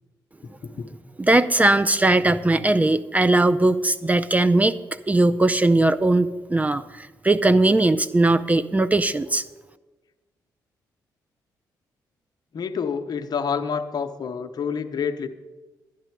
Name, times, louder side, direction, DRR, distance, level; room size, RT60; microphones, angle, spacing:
voice 1, 0.4-0.9 12.5-15.3, left 6 dB, 55° left, 8 dB, 0.8 m, -28 dB
voice 2, 1.2-4.7 5.1-9.4, right 2 dB, 20° right, 13 dB, 0.5 m, -19 dB
11.5 x 9.9 x 4.6 m, 1.2 s
supercardioid pair, 65°, 8 cm